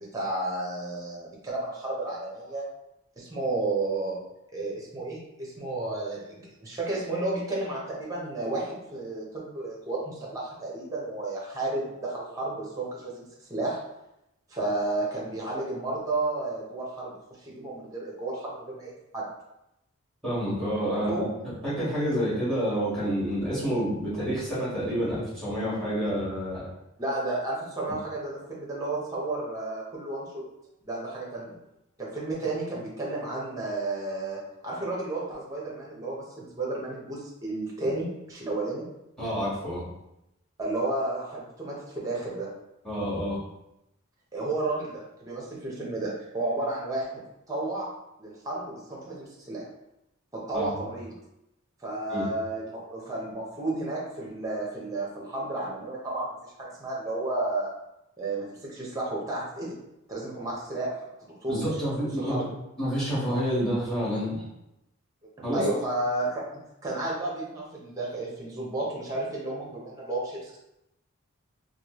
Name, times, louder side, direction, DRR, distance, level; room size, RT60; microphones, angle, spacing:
voice 1, 0.1-2.7 3.2-4.2 4.5-13.8 14.5-19.3 20.9-21.3 27.0-30.4 30.8-31.6 32.0-38.9 40.6-42.5 44.3-47.2 47.5-47.9 48.2-49.6 50.3-51.1 51.8-57.7 58.2-59.8 60.1-60.9 61.4-61.8 62.2-62.4 65.5-66.4 66.8-70.6, right 2 dB, 15° right, -4 dB, 0.7 m, -32 dB
voice 2, 20.2-26.7 39.2-39.9 42.8-43.4 50.5-50.7 52.1-52.3 61.5-62.4 62.8-64.5 65.4-65.6, equal, 5° left, -9 dB, 1.4 m, -28 dB
3.1 x 2.3 x 3.0 m, 0.88 s
head